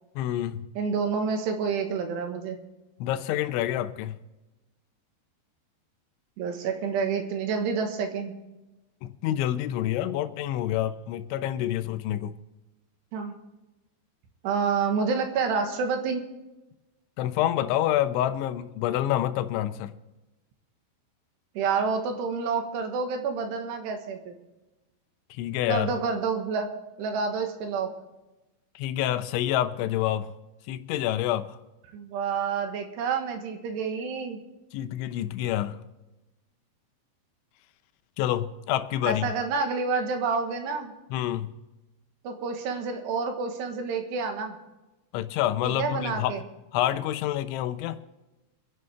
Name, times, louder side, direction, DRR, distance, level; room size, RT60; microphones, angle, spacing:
voice 1, 0.2-0.7 3.0-4.2 9.0-12.3 17.2-19.9 25.4-25.9 28.8-30.3 30.7-31.6 34.7-35.8 38.2-39.3 41.1-41.5 45.1-46.4 46.7-48.0, left 12 dB, 90° left, 3.2 m, -27 dB
voice 2, 0.8-2.6 6.4-8.3 13.1-13.3 14.4-16.3 21.6-24.3 25.7-26.7 27.0-27.9 31.9-34.4 39.0-40.9 42.2-44.6 45.6-46.4, right 5 dB, 70° right, 3.3 m, -28 dB
26.0 x 10.5 x 3.4 m
omnidirectional pair, 5.2 m